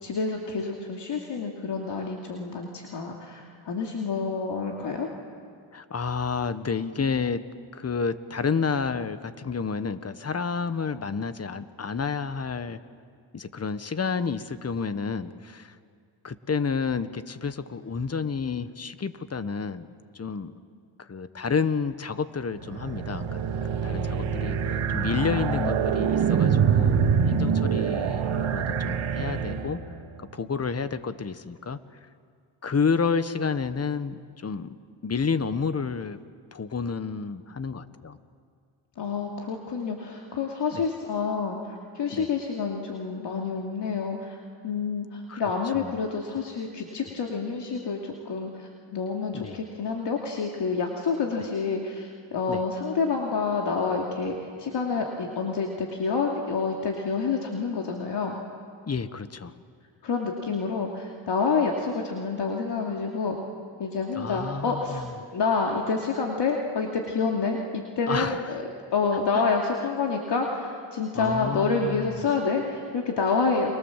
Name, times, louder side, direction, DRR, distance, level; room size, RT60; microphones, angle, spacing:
voice 1, 0.0-5.1 25.1-25.9 39.0-44.4 44.6-58.4 60.0-63.4 63.8-65.0 65.3-68.6 68.9-73.7, left 4 dB, 55° left, 0 dB, 2.7 m, -28 dB
voice 2, 5.7-7.4 7.7-12.8 13.3-15.8 16.2-19.9 20.1-20.6 21.0-23.4 23.8-29.8 30.3-31.8 32.6-34.8 35.0-36.2 36.5-38.2 40.7-40.8 42.1-42.3 45.3-45.5 45.7-45.9 49.3-49.6 52.5-52.6 58.9-59.5 64.2-65.1 68.1-68.6 69.3-69.4 71.1-72.1, left 5 dB, 30° left, 12 dB, 1.4 m, -30 dB
sound 1, 22.6-30.0, right 7 dB, 70° right, 2.0 m, -25 dB
29.5 x 24.0 x 7.5 m, 2.2 s
cardioid pair, 75°, 48 cm